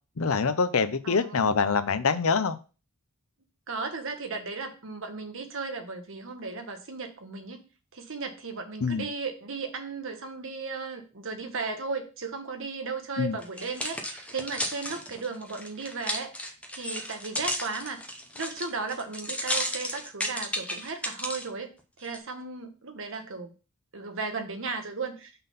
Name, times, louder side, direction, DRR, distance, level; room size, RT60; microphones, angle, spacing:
voice 1, 0.2-2.6 8.8-9.0 13.2-13.4, left 5 dB, 65° left, 11 dB, 0.6 m, -25 dB
voice 2, 1.0-1.5 3.7-7.6 7.9-16.5 16.7-18.0 18.3-21.7 22.0-23.5 23.9-25.4, right 4 dB, 60° right, 6 dB, 1.2 m, -35 dB
sound 1, 13.4-21.5 22.0-22.2, left 1 dB, 5° left, 0.7 m, -33 dB
5.6 x 3.8 x 5.6 m, 0.33 s
head